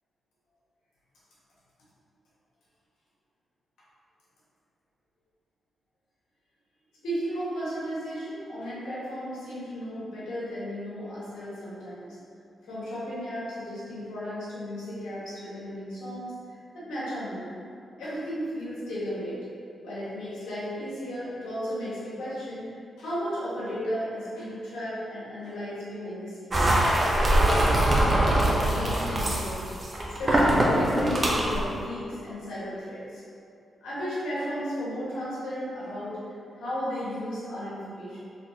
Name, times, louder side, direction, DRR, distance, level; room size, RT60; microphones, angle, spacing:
voice 1, 7.0-12.1 12.7-17.5 18.0-19.4 19.8-22.6 23.0-26.6 27.2-29.6 30.2-33.2 33.8-36.2 36.6-38.2, equal, 85° left, -9 dB, 1.2 m, -34 dB
sound 1, 26.5-31.6, right 1 dB, 35° right, 0.7 m, -23 dB
4.1 x 2.8 x 2.8 m, 2.5 s
cardioid pair, 65°, 0 cm